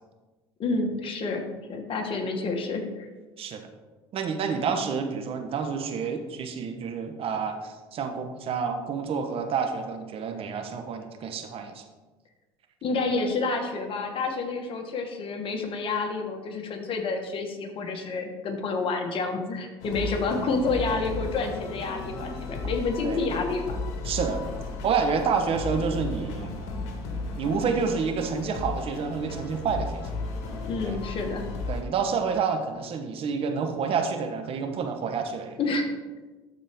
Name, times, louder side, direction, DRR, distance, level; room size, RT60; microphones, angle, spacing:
voice 1, 0.6-3.1 12.8-23.8 30.6-31.4 35.6-35.8, left 3 dB, 50° left, 4 dB, 1.4 m, -29 dB
voice 2, 4.1-11.8 23.0-23.2 24.1-24.4 24.8-26.5 27.4-30.0 30.9-31.0 31.7-35.6, right 5 dB, 50° right, 6 dB, 1.0 m, -29 dB
sound 1, 19.8-31.8, left 3 dB, 75° left, 1.4 m, -34 dB
12.5 x 4.3 x 3.5 m, 1.2 s
supercardioid pair, 90°, 12 cm